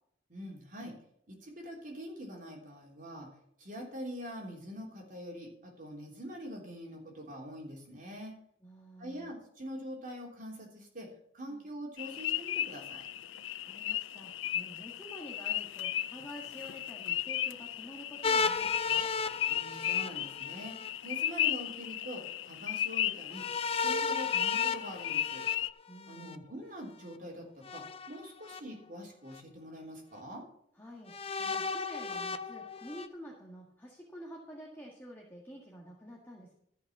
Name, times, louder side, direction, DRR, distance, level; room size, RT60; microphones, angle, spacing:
voice 1, 0.3-0.9 1.3-3.3 3.6-8.3 9.0-11.1 11.3-13.0 19.5-20.8 21.0-23.4 23.8-25.5 26.1-30.5, equal, 45° right, -1 dB, 3.3 m, -44 dB
voice 2, 8.6-9.3 11.5-11.7 13.6-19.1 25.9-26.5 30.8-36.5, equal, 10° left, -3 dB, 1.8 m, -49 dB
sound 1, 12.0-25.7, left 11 dB, 85° left, 0.4 m, -35 dB
sound 2, 18.2-20.9 23.3-26.4 27.6-28.6 29.3-29.4 31.1-33.1, left 5 dB, 30° left, 0.6 m, -34 dB
13.5 x 5.6 x 7.2 m, 0.70 s
head